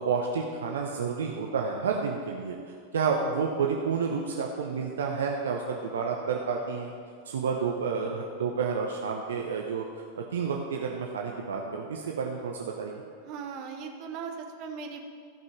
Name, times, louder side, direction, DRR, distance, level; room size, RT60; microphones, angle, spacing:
voice 1, 0.0-2.6 2.9-6.9 7.3-13.0, right 5 dB, 65° right, 1 dB, 0.8 m, -30 dB
voice 2, 13.2-15.0, right 6 dB, 40° right, 3 dB, 1.3 m, -38 dB
14.5 x 5.4 x 5.1 m, 2.1 s
figure-of-eight pair, 90°, 0 cm